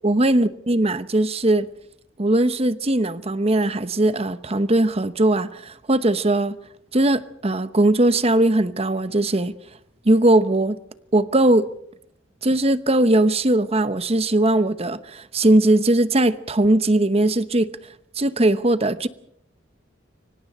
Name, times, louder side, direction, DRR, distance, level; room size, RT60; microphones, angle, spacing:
voice 1, 0.0-1.7 2.2-6.6 6.9-9.5 10.0-10.8 11.1-11.7 12.4-17.7 18.2-19.1, right 1 dB, 30° right, 1.0 m, -19 dB
29.5 x 25.0 x 4.4 m
head